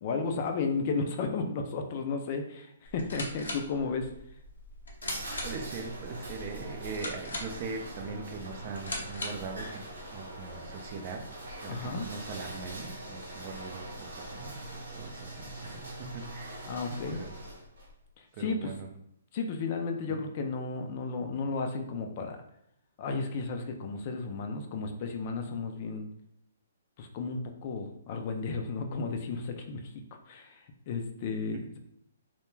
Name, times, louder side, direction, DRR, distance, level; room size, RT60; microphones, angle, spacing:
voice 1, 0.0-4.1 11.7-12.1 16.7-17.2 18.2-18.7 19.3-22.4 23.0-26.1 27.0-29.9 30.3-31.8, left 4 dB, 45° left, 5 dB, 0.4 m, -33 dB
sound 1, 2.8-9.6, left 1 dB, 85° left, 0.7 m, -41 dB
sound 2, 4.4-17.9, right 1 dB, 80° right, 0.7 m, -43 dB
voice 2, 5.4-11.2 11.6-14.6 15.0-16.6 17.1-17.3 18.3-18.9 20.1-20.2, right 4 dB, 40° right, 3 dB, 0.4 m, -41 dB
2.2 x 2.1 x 3.1 m, 0.73 s
hypercardioid pair, 140°, 0 cm